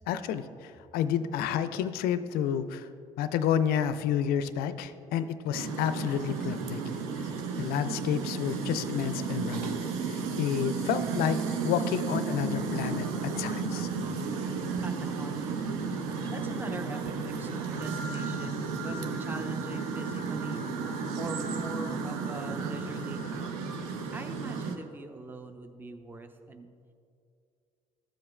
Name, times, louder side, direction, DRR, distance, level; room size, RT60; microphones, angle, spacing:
voice 1, 0.1-2.9 3.2-7.0 7.6-9.8 10.0-13.9, left 9 dB, 60° left, 13 dB, 0.4 m, -30 dB
sound 1, 5.5-24.8, right 5 dB, 75° right, 0.6 m, -33 dB
voice 2, 14.8-15.6 16.3-23.5 24.1-26.7, right 2 dB, 10° right, 7 dB, 0.5 m, -42 dB
12.5 x 7.4 x 2.2 m, 2.4 s
figure-of-eight pair, 55°, 18 cm